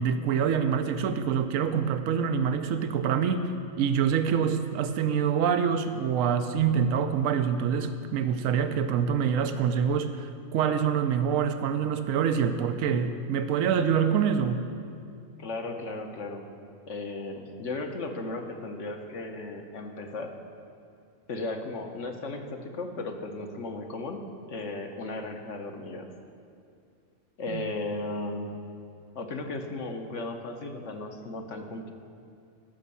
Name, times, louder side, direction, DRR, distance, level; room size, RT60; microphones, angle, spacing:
voice 1, 0.0-3.5 3.8-14.6 27.5-27.6, right 7 dB, 80° right, 9 dB, 1.0 m, -26 dB
voice 2, 15.4-16.5 16.9-20.4 21.3-24.2 24.5-26.1 27.4-28.5 29.1-31.9, left 2 dB, 65° left, 4 dB, 1.3 m, -35 dB
13.0 x 6.2 x 6.9 m, 2.4 s
omnidirectional pair, 1.4 m